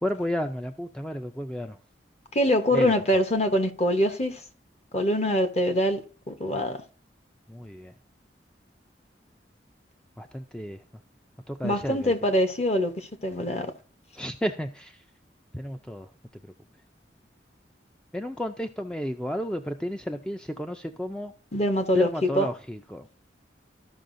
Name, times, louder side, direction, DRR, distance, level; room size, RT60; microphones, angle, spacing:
voice 1, 0.0-1.8 2.7-3.2 7.5-7.9 10.2-10.8 11.5-12.1 14.2-15.0 15.5-16.1 18.1-21.3 21.9-23.1, equal, 5° left, 0.4 m, -32 dB
voice 2, 2.3-4.4 4.9-6.0 6.3-6.8 11.6-13.7 21.5-22.5, equal, 40° left, 0.9 m, -24 dB
14.0 x 5.5 x 2.6 m
head